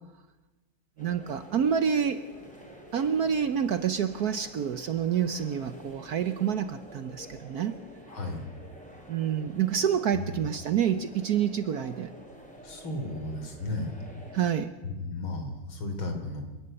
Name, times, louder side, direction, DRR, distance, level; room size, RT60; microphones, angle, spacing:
sound 1, 1.0-14.5, equal, 5° left, 4.0 m, -49 dB
voice 1, 1.0-2.2 2.9-7.8 9.1-12.1 14.3-14.7, right 8 dB, 60° right, 11 dB, 1.1 m, -28 dB
voice 2, 8.1-8.4 10.1-10.3 12.6-14.2 14.8-16.4, left 2 dB, 75° left, 5 dB, 3.9 m, -34 dB
27.5 x 11.0 x 8.8 m, 1.1 s
omnidirectional pair, 2.2 m